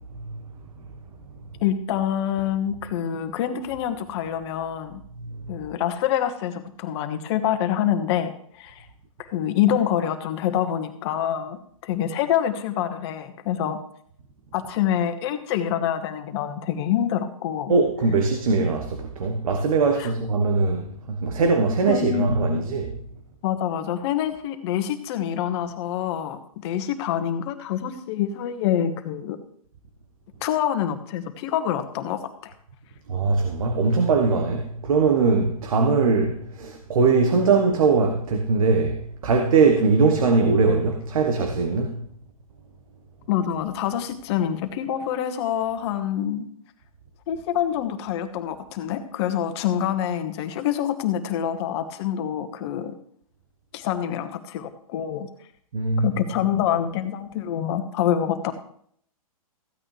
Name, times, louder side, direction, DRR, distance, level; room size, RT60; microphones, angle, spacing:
voice 1, 1.6-5.0 5.5-8.9 9.2-13.8 14.5-17.7 20.0-20.1 21.9-22.6 23.4-29.4 30.4-32.5 43.3-46.5 47.3-52.9 53.7-55.3 56.0-58.5, left 10 dB, 45° left, 1.5 m, -26 dB
voice 2, 5.2-5.5 17.7-23.0 33.1-42.0 55.7-56.5, right 4 dB, 70° right, 1.3 m, -21 dB
15.0 x 8.9 x 3.3 m
hypercardioid pair, 130°, 18 cm